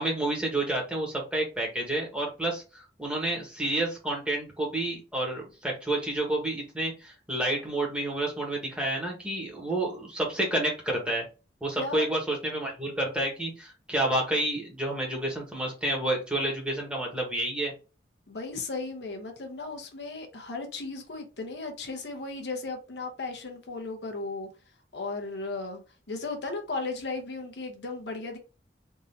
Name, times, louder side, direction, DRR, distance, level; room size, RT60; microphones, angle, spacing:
voice 1, 0.0-11.2 11.6-17.7, right 1 dB, 5° right, 1.4 m, -29 dB
voice 2, 11.7-12.1 18.3-24.5 24.9-25.8 26.1-28.4, left 3 dB, 75° left, 0.9 m, -35 dB
3.7 x 2.8 x 2.8 m
head